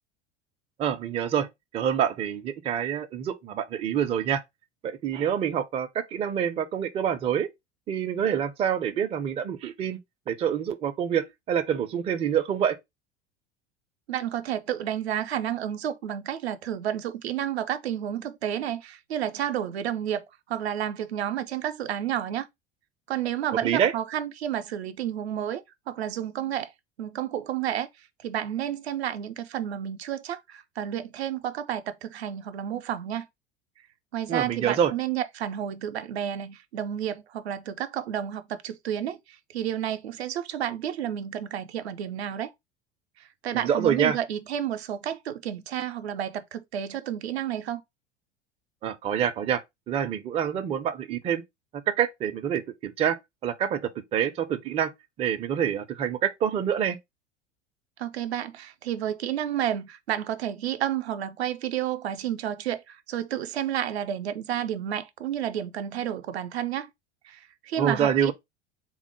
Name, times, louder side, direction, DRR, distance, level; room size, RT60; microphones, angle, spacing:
voice 1, 0.8-1.5 1.7-4.4 4.8-7.5 7.9-10.0 10.3-12.8 23.6-23.9 34.3-34.9 43.5-44.2 48.8-49.6 49.9-51.4 51.9-53.8 54.1-54.9 55.2-57.0 67.8-68.3, right 9 dB, 20° right, 0.4 m, -26 dB
voice 2, 14.1-22.5 23.1-26.7 27.0-27.9 28.2-33.3 34.1-39.2 39.5-42.5 43.2-47.8 58.0-66.9 67.3-68.3, right 10 dB, 70° right, 0.5 m, -31 dB
3.7 x 2.1 x 4.2 m
figure-of-eight pair, 75°, 33 cm